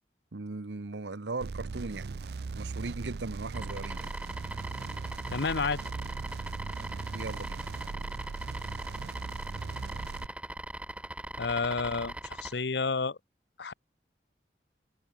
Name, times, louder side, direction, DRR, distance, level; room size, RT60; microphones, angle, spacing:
voice 1, 0.3-4.1 7.1-7.6, right 3 dB, 90° right, 1.0 m, -38 dB
sound 1, 1.4-10.3, right 4 dB, 65° right, 0.5 m, -39 dB
sound 2, 3.5-12.5, right 1 dB, 5° right, 1.3 m, -41 dB
voice 2, 5.3-5.8 11.4-13.2 13.6-13.7, left 4 dB, 75° left, 0.8 m, -30 dB
head